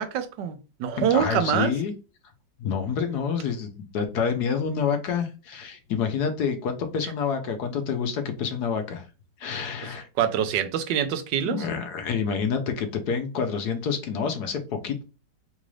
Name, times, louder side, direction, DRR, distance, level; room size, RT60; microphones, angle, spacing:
voice 1, 0.0-1.7 10.2-11.6, right 9 dB, 80° right, 1.3 m, -25 dB
voice 2, 1.0-1.9 2.6-9.1 9.4-10.1 11.5-15.0, left 6 dB, 70° left, 1.2 m, -28 dB
3.9 x 2.5 x 3.1 m
omnidirectional pair, 2.0 m